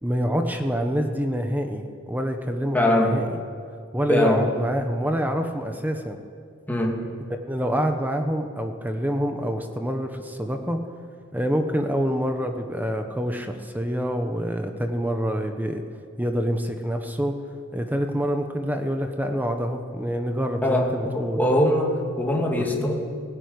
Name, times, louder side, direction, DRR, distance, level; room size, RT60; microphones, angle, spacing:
voice 1, 0.0-3.4 3.9-6.2 7.5-10.8 11.3-15.8 16.2-17.3 17.7-21.4 22.6-22.7, equal, 10° right, 5 dB, 1.2 m, -26 dB
voice 2, 2.7-3.2 4.1-4.4 6.7-7.0 20.6-22.9, left 1 dB, 10° left, -1 dB, 2.6 m, -22 dB
17.0 x 16.5 x 9.7 m, 2.2 s
head